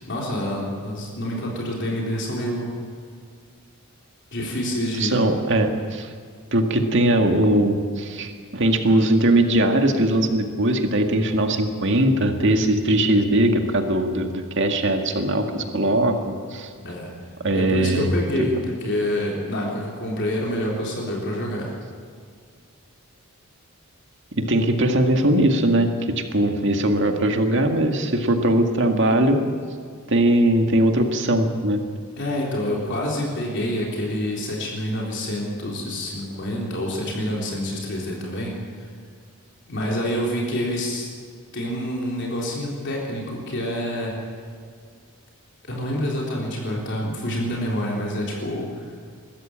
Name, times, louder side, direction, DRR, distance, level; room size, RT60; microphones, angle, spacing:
voice 1, 0.0-2.8 4.3-5.2 16.8-17.1 17.5-18.6 18.8-21.7 32.2-38.9 39.6-41.1 41.5-44.3 45.7-48.9, equal, 55° left, -2 dB, 3.8 m, -27 dB
voice 2, 5.0-6.1 6.5-16.7 17.4-18.1 24.4-25.9 26.2-29.4 30.1-31.8, right 1 dB, 55° right, 4 dB, 2.0 m, -20 dB
21.5 x 14.0 x 8.9 m, 2.1 s
head